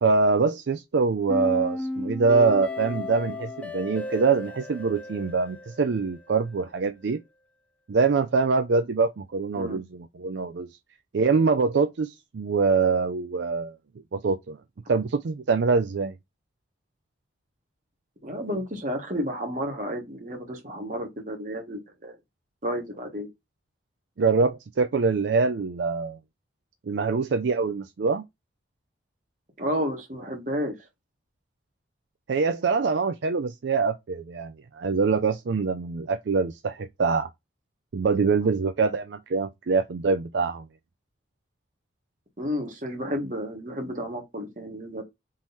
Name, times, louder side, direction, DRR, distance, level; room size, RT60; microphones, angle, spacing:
voice 1, 0.0-7.2 7.9-10.7 11.1-13.7 14.1-14.6 14.9-16.1 24.2-26.2 26.9-28.2 32.3-37.3 37.9-40.7, right 4 dB, 70° right, 0.4 m, -24 dB
sound 1, 1.3-6.3, left 2 dB, 5° left, 0.5 m, -34 dB
voice 2, 18.2-22.2 22.6-23.3 29.6-30.7 42.4-45.0, equal, 45° right, 1.4 m, -31 dB
3.8 x 3.1 x 3.9 m
head